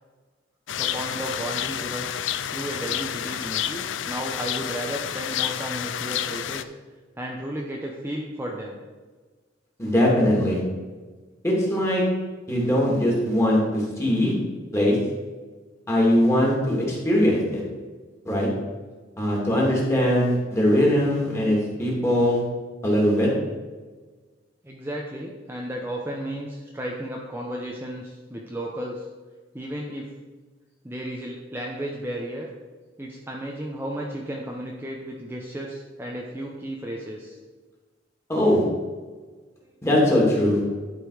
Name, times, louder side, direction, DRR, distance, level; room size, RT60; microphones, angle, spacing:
sound 1, 0.7-6.6, left 10 dB, 85° left, 0.4 m, -29 dB
voice 1, 0.8-2.2 2.5-6.7 7.2-8.8 24.6-29.1 29.5-30.1 30.8-32.5 33.0-37.4, right 1 dB, 15° right, -1 dB, 0.8 m, -33 dB
voice 2, 9.8-10.6 11.4-12.0 12.5-14.3 14.7-15.0 15.9-17.6 18.2-18.5 19.2-22.4 22.8-23.3 38.3-38.6 39.8-40.6, left 1 dB, 15° left, -3 dB, 2.6 m, -21 dB
11.5 x 5.2 x 4.9 m, 1.3 s
head